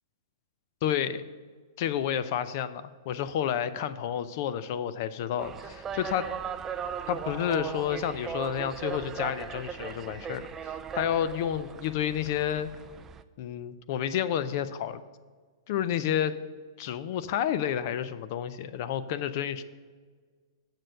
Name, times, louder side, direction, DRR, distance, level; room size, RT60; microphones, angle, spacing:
voice 1, 0.8-1.2 1.8-6.3 7.1-12.7 13.4-15.0 15.7-16.4 16.8-19.6, left 9 dB, 45° left, 14 dB, 0.5 m, -30 dB
sound 1, 5.4-13.2, right 7 dB, 15° right, 0.3 m, -38 dB
7.9 x 6.6 x 6.4 m, 1.5 s
hypercardioid pair, 150°, 2 cm